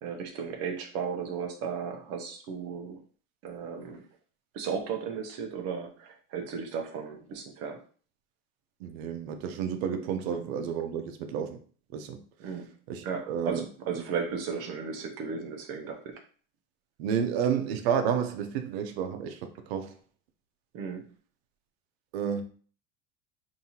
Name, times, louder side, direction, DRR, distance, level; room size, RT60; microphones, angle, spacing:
voice 1, 0.0-3.0 3.4-4.0 4.5-7.8 12.4-12.7 13.0-16.2 20.7-21.0, right 6 dB, 50° right, 0.8 m, -35 dB
voice 2, 8.8-11.6 11.9-12.2 12.9-13.7 17.0-19.4 19.7-19.9 22.1-22.4, right 7 dB, 90° right, 0.8 m, -30 dB
5.3 x 2.7 x 2.9 m
cardioid pair, 150°, 30 cm